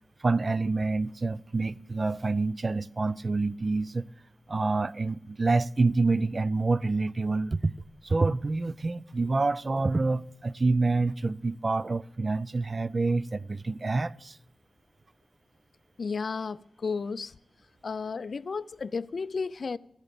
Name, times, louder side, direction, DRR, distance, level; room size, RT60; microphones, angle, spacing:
voice 1, 0.2-4.0 4.5-7.7 8.0-14.3, right 3 dB, 40° right, 0.4 m, -27 dB
voice 2, 16.0-17.4 17.8-19.8, left 5 dB, 60° left, 0.4 m, -33 dB
14.0 x 8.9 x 6.8 m
wide cardioid pair, 75°, 0 cm